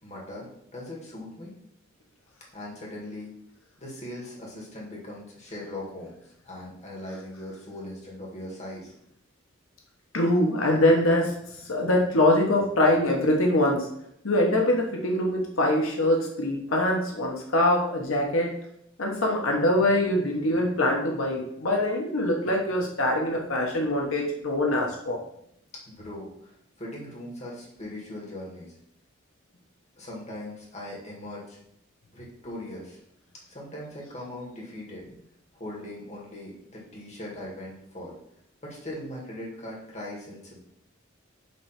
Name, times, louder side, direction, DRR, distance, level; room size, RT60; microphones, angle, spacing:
voice 1, 0.0-1.5 2.5-3.3 3.8-8.9 25.9-26.5 26.8-28.7 30.0-31.6 32.1-33.0 33.5-35.0 35.5-38.1 38.6-40.6, left 1 dB, 35° left, -3 dB, 2.2 m, -40 dB
voice 2, 10.1-11.3 11.7-13.9 14.2-18.5 19.0-25.2, left 1 dB, 90° left, 0 dB, 1.2 m, -23 dB
7.6 x 3.3 x 5.8 m, 0.74 s
head